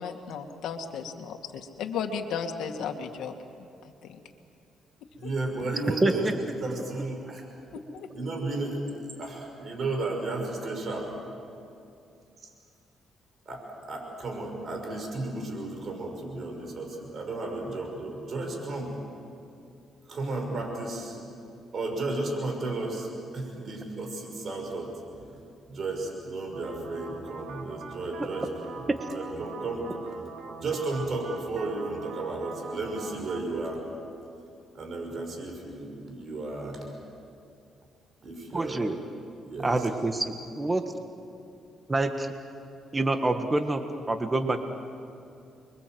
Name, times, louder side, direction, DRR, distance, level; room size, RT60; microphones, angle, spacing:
voice 1, 0.0-3.3 4.0-4.2 5.2-5.3 7.7-8.1, left 6 dB, 80° left, 5 dB, 2.1 m, -35 dB
voice 2, 5.2-6.3 6.6-7.5 8.1-8.9 9.2-11.1 12.4-12.5 13.5-19.0 20.1-21.2 21.7-24.9 25.3-25.4 25.7-28.8 29.1-30.0 30.6-33.8 34.7-36.9 38.2-38.9 39.4-40.0, right 2 dB, 50° right, 2 dB, 6.0 m, -33 dB
voice 3, 6.0-6.3 28.9-29.1 38.5-39.0 39.6-40.8 41.9-42.3 42.9-44.6, right 2 dB, 20° right, 6 dB, 1.6 m, -26 dB
sound 1, 26.5-33.4, right 4 dB, 75° right, 2.7 m, -42 dB
29.5 x 23.5 x 7.9 m, 2.6 s
cardioid pair, 90°, 0 cm